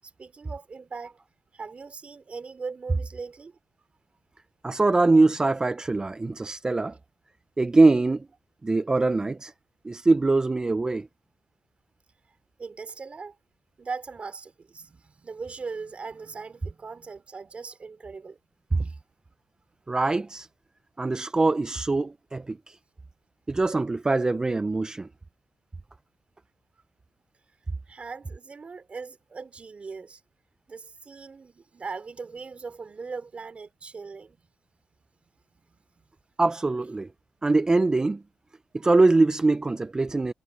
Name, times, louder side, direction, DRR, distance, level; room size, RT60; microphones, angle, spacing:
voice 1, 0.2-1.2 1.5-3.6 12.6-13.3 13.8-18.4 18.8-19.0 27.9-30.2 30.7-34.4 35.5-35.6 38.8-38.9, right 4 dB, 40° right, 3.1 m, -39 dB
voice 2, 4.6-7.0 7.6-8.3 8.6-9.5 9.8-11.1 18.7-18.9 19.9-20.5 21.0-22.8 23.5-25.1 36.4-37.1 37.4-38.2 38.7-40.3, right 3 dB, 20° right, 0.5 m, -23 dB
cardioid pair, 90°, 3 cm